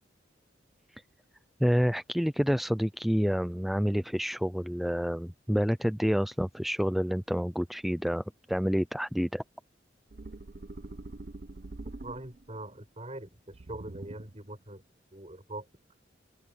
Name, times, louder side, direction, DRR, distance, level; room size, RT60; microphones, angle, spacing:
voice 1, 1.6-9.4, equal, ahead, 0.3 m, -28 dB
sound 1, 10.1-12.6 13.5-14.5, right 2 dB, 50° right, 0.7 m, -44 dB
voice 2, 12.0-14.8 15.1-15.7, right 1 dB, 35° right, 6.2 m, -42 dB
open air
head